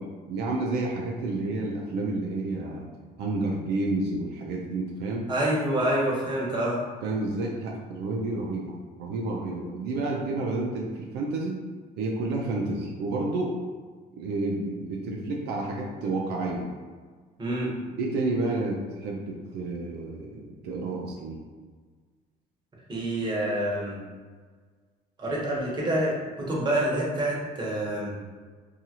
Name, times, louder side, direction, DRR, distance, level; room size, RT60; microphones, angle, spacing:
voice 1, 0.0-2.9 3.2-5.3 7.0-11.6 12.0-13.6 14.1-16.7 18.0-21.4, right 2 dB, 75° right, -1 dB, 0.4 m, -30 dB
voice 2, 5.3-6.8 17.4-17.7 22.9-24.0 25.2-28.1, right 1 dB, 25° right, -5 dB, 1.0 m, -27 dB
2.7 x 2.4 x 2.8 m, 1.5 s
cardioid pair, 110°, 17 cm